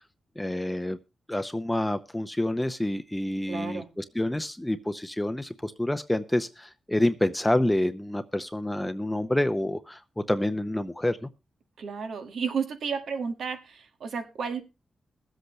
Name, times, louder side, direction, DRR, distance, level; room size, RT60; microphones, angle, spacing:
voice 1, 0.4-1.0 1.3-11.3, left 1 dB, 10° left, 9 dB, 0.7 m, -28 dB
voice 2, 3.5-3.9 11.8-14.6, right 6 dB, 80° right, 7 dB, 1.7 m, -32 dB
21.5 x 7.9 x 3.1 m, 0.26 s
cardioid pair, 80°, 0 cm